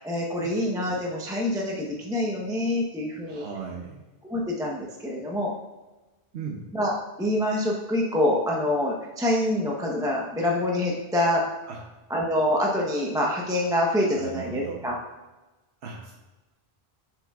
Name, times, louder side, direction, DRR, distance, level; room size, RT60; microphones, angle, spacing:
voice 1, 0.0-3.4 4.3-5.5 6.7-6.9 7.2-11.4 12.1-15.0, left 1 dB, 5° right, -2 dB, 0.8 m, -26 dB
voice 2, 3.3-4.0 6.3-6.6 11.7-11.8 14.1-14.9 15.8-16.1, right 6 dB, 85° right, -1 dB, 1.1 m, -37 dB
9.9 x 6.6 x 2.4 m, 1.1 s
omnidirectional pair, 1.1 m